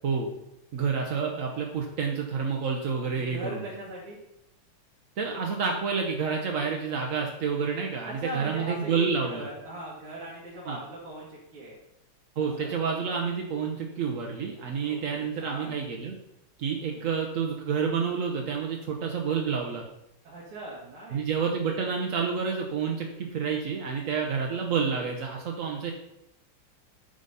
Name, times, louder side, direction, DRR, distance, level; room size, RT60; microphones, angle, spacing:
voice 1, 0.7-3.6 5.2-9.5 10.7-10.8 12.4-16.1 16.6-19.8 21.1-25.9, right 6 dB, 65° right, 1 dB, 0.8 m, -29 dB
voice 2, 3.0-4.2 8.0-11.8 12.6-12.7 14.7-15.8 16.8-17.0 20.2-21.2, right 1 dB, 90° right, -7 dB, 2.6 m, -40 dB
8.8 x 3.8 x 5.5 m, 0.83 s
omnidirectional pair, 2.4 m